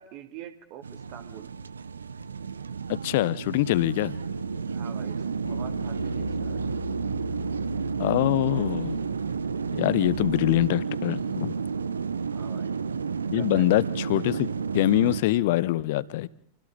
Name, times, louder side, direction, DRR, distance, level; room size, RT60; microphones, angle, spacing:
voice 1, 0.0-1.5 4.7-6.7 12.3-12.7 13.3-13.7, right 10 dB, 45° right, 2.6 m, -44 dB
sound 1, 0.8-15.2, right 6 dB, 75° right, 1.0 m, -31 dB
voice 2, 2.9-4.2 8.0-9.0 9.7-11.5 13.3-16.3, left 16 dB, 50° left, 0.9 m, -24 dB
sound 2, 3.7-10.7, left 2 dB, 85° left, 1.0 m, -39 dB
29.5 x 25.5 x 4.0 m
figure-of-eight pair, 90°, 0 cm